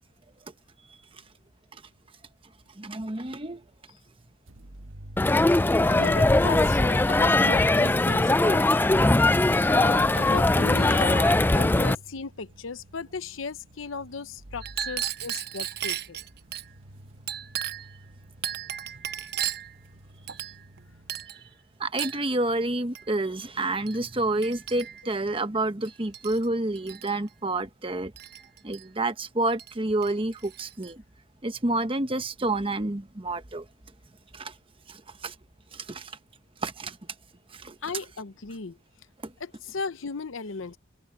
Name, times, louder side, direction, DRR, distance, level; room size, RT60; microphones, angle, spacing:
voice 1, 2.8-3.6 21.8-28.1 28.6-31.0 31.4-33.6 34.3-34.5 34.9-35.3 35.7-36.1 36.6-37.0 37.5-37.7 39.2-39.3, right 2 dB, 25° right, 1.1 m, -29 dB
sound 1, 4.5-21.3, right 1 dB, 90° right, 1.5 m, -50 dB
Crowd, 5.2-11.9, left 2 dB, 10° left, 0.3 m, -21 dB
voice 2, 5.9-8.8 9.6-16.2 37.8-38.8 39.4-40.8, left 5 dB, 85° left, 0.8 m, -35 dB
Chink clink, 14.6-16.7 17.3-17.9 18.4-19.8 20.3-20.8 21.1-21.4 22.0-22.3 22.9-23.1 23.9-24.0 24.4-25.1 25.8-26.5 26.8-27.1 28.2-28.8 29.6-29.7 30.0-30.9, right 10 dB, 55° right, 0.9 m, -35 dB
head